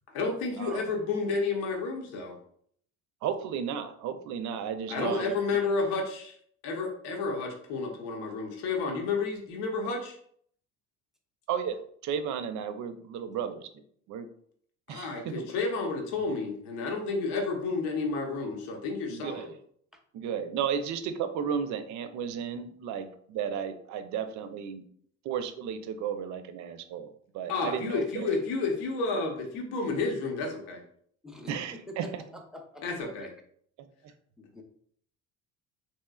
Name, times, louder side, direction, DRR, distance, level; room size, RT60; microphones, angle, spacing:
voice 1, 0.1-2.4 4.9-6.4 6.6-10.2 14.9-19.5 27.5-30.8 32.8-33.3, left 4 dB, 75° left, 1 dB, 0.8 m, -31 dB
voice 2, 3.2-5.3 11.5-13.7 14.1-14.3 14.9-15.5 19.1-19.5 20.1-24.8 25.2-27.1 27.3-28.3 31.5-32.2, right 7 dB, 55° right, 9 dB, 0.5 m, -34 dB
voice 3, 31.9-32.8 34.4-34.6, left 1 dB, ahead, 2 dB, 0.6 m, -46 dB
3.1 x 3.0 x 2.3 m, 0.63 s
hypercardioid pair, 70°, 36 cm